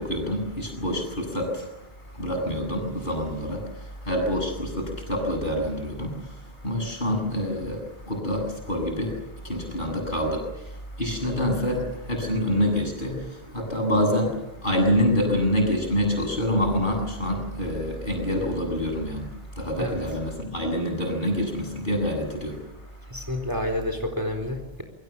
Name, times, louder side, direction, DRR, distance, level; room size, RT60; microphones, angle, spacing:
voice 1, 0.0-23.3, equal, 50° left, 3 dB, 8.0 m, -27 dB
voice 2, 23.1-24.8, left 1 dB, 20° right, 5 dB, 4.2 m, -29 dB
28.0 x 23.5 x 7.1 m, 0.95 s
omnidirectional pair, 1.0 m